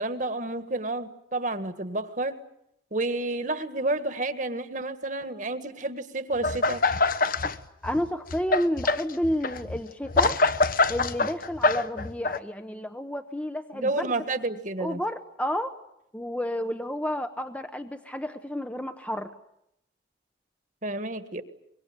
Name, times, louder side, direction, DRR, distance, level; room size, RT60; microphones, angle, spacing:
voice 1, 0.0-2.4 2.9-6.8 13.7-15.0 20.8-21.4, right 2 dB, 40° right, 9 dB, 1.6 m, -30 dB
sound 1, 6.4-7.5 7.8-12.4, left 3 dB, 45° left, 1.1 m, -24 dB
voice 2, 7.8-10.4 10.9-14.1 14.8-15.8 16.1-19.3, equal, 5° left, 7 dB, 0.9 m, -31 dB
24.5 x 23.5 x 8.8 m, 0.80 s
head